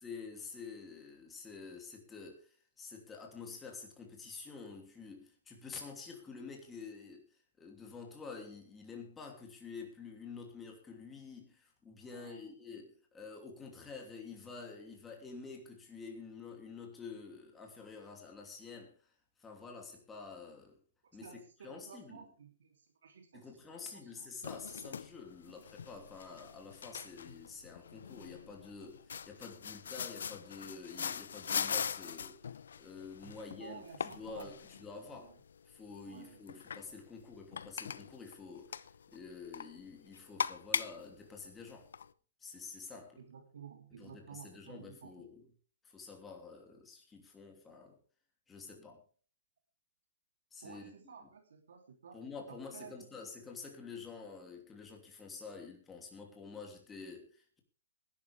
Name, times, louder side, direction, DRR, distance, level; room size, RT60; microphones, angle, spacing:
voice 1, 0.0-7.3 7.6-19.1 19.4-20.8 21.1-22.2 23.3-35.3 35.7-41.9 42.4-43.2 44.0-45.4 45.8-48.0 48.5-49.0 50.5-50.9 51.2-51.3 52.1-57.6, left 4 dB, 10° left, 3.0 m, -49 dB
voice 2, 12.1-12.5 21.2-24.3 33.2-34.6 35.2-35.4 36.0-36.4 43.2-45.3 50.6-53.0, right 6 dB, 70° right, 3.2 m, -53 dB
sound 1, 24.4-42.1, left 7 dB, 70° left, 0.8 m, -42 dB
20.0 x 11.5 x 3.5 m
hypercardioid pair, 170°, 0 cm